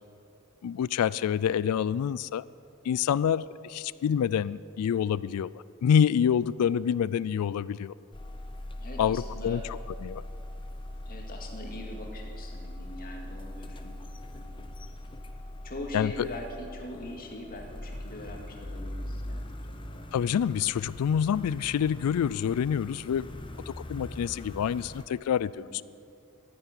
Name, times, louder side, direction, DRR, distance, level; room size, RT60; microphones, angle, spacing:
voice 1, 0.6-2.4 2.8-5.5 5.8-7.9 9.0-9.6 10.0-10.2 15.9-16.3 20.1-23.3 23.7-25.8, left 8 dB, 85° left, 20 dB, 0.3 m, -27 dB
sound 1, 8.1-25.0, left 1 dB, 25° left, 0.8 m, -41 dB
voice 2, 8.8-9.6 11.1-14.0 14.3-14.6 15.6-20.4 25.5-25.8, left 1 dB, 40° left, 1 dB, 2.2 m, -42 dB
13.5 x 10.5 x 9.8 m, 2.6 s
head